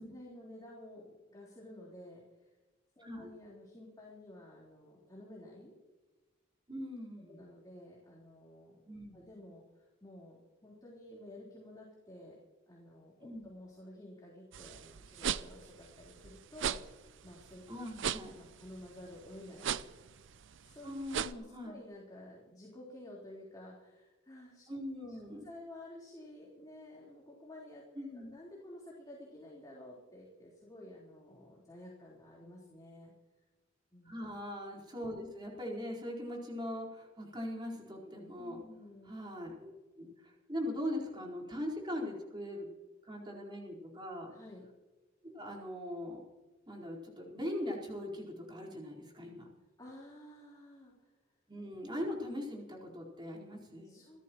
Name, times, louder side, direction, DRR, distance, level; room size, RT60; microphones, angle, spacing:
voice 1, 0.0-2.5 3.0-5.7 7.3-8.8 9.1-12.4 12.7-17.6 18.4-19.8 20.6-20.9 21.4-24.6 25.1-25.2 25.4-33.1 33.9-34.1 38.4-39.1 44.3-44.7 49.8-51.4 53.8-54.2, left 1 dB, 20° left, -5 dB, 4.1 m, -52 dB
voice 2, 3.0-3.3 6.7-7.4 8.8-9.2 13.2-13.5 17.7-18.4 20.8-21.8 24.7-25.5 27.9-28.3 34.0-38.6 39.1-42.7 43.0-44.3 45.3-46.2 46.7-49.5 51.5-54.0, left 1 dB, 25° right, -2 dB, 4.5 m, -41 dB
sound 1, 14.5-21.3, right 8 dB, 70° right, 0.6 m, -39 dB
28.5 x 14.0 x 3.1 m, 1.2 s
head